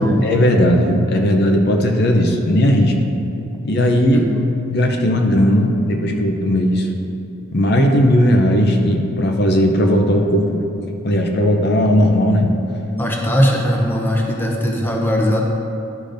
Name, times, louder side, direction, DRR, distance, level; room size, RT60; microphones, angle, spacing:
voice 1, 0.2-2.9 3.6-4.2 4.7-6.9 7.5-10.6 11.0-12.5, equal, 50° left, 3 dB, 0.6 m, -16 dB
voice 2, 13.0-15.4, equal, 10° left, -1 dB, 0.6 m, -19 dB
11.5 x 5.0 x 2.6 m, 2.8 s
head